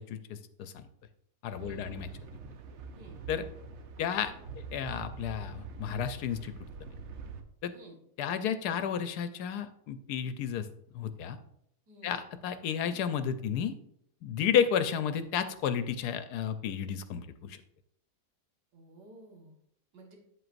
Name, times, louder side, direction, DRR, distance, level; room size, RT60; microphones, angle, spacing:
voice 1, 0.1-0.9 1.4-2.1 3.3-3.4 4.0-6.5 6.8-6.9 7.6-7.7 8.2-10.7 10.9-11.4 12.0-13.7 14.2-17.6, left 8 dB, 75° left, 11 dB, 1.1 m, -32 dB
sound 1, 1.5-7.4, right 4 dB, 60° right, 0.8 m, -45 dB
voice 2, 1.6-2.0 2.9-3.2 7.7-8.0 11.9-12.2 18.7-19.5 19.9-20.2, right 2 dB, 85° right, 0 dB, 2.1 m, -52 dB
8.3 x 7.8 x 2.5 m, 0.72 s
omnidirectional pair, 1.8 m